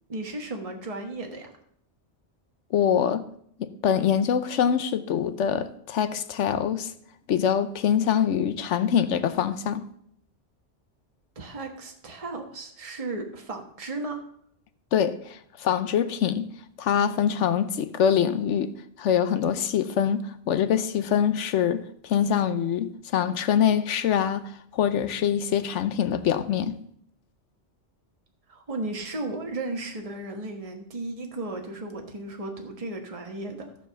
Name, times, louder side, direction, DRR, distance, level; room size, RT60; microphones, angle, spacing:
voice 1, 0.1-1.5 11.3-14.2 28.5-33.7, right 2 dB, 30° right, 1.4 m, -35 dB
voice 2, 2.7-3.2 3.6-6.9 7.3-9.8 14.9-16.5 16.8-18.7 19.0-26.8, left 8 dB, 85° left, 1.0 m, -24 dB
14.5 x 4.9 x 6.9 m
omnidirectional pair, 1.2 m